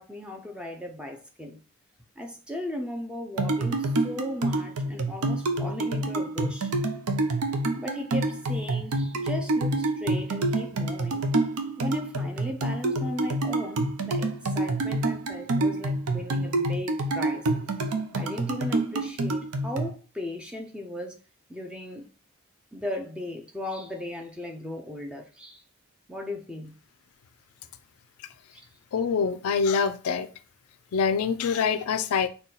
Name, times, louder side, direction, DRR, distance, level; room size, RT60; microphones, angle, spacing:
voice 1, 0.0-1.6 2.2-6.7 7.7-11.2 11.8-17.5 18.1-21.2 21.5-22.1 22.7-25.6 26.1-26.7 28.5-28.6, left 1 dB, 5° right, 0.4 m, -36 dB
sound 1, 3.4-19.9, right 2 dB, 85° right, 0.6 m, -27 dB
voice 2, 28.9-30.3 30.9-32.3, left 6 dB, 75° left, 0.4 m, -25 dB
4.0 x 2.3 x 3.8 m
head